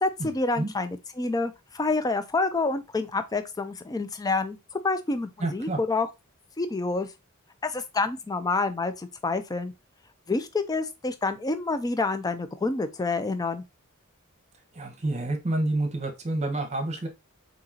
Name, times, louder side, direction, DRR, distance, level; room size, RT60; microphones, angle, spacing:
voice 1, 0.0-6.1 6.6-7.1 7.6-9.7 10.3-13.6, left 3 dB, 15° left, 0.4 m, -28 dB
voice 2, 5.4-5.8 14.7-17.1, right 2 dB, 30° right, 0.9 m, -28 dB
3.9 x 2.9 x 3.7 m
head